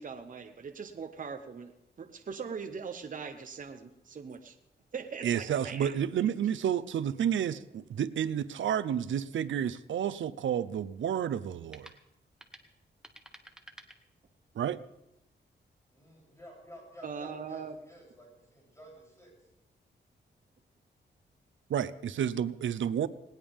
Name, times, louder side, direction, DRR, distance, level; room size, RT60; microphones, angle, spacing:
voice 1, 0.0-1.7 2.0-4.6 4.9-5.9 17.0-17.7, right 6 dB, 45° right, 1.0 m, -41 dB
voice 2, 5.2-11.9 14.5-14.8 21.7-23.1, right 9 dB, 90° right, 0.8 m, -30 dB
sound 1, 11.6-14.6, right 1 dB, 5° right, 1.5 m, -56 dB
voice 3, 15.9-19.5, equal, 15° left, 8.0 m, -53 dB
19.5 x 19.0 x 3.6 m
wide cardioid pair, 125°, 19 cm